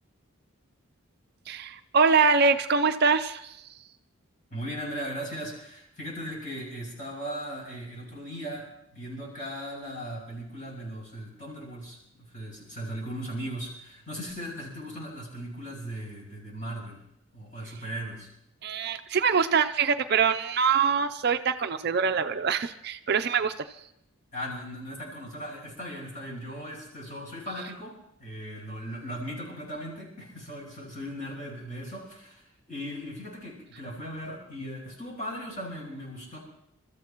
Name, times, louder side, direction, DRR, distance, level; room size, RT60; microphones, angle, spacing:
voice 1, 1.5-3.6 18.6-23.5, right 5 dB, 50° right, 9 dB, 0.5 m, -24 dB
voice 2, 4.5-17.0 17.3-18.3 24.3-36.4, equal, 35° left, -2 dB, 7.3 m, -38 dB
28.5 x 14.0 x 3.0 m, 0.77 s
head